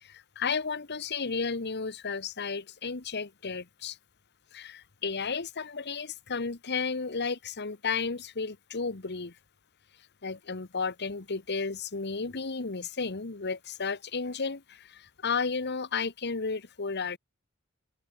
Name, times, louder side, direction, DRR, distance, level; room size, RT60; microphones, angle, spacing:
voice 1, 0.0-4.0 4.5-9.3 10.2-17.2, left 5 dB, 55° left, 1.3 m, -33 dB
open air
head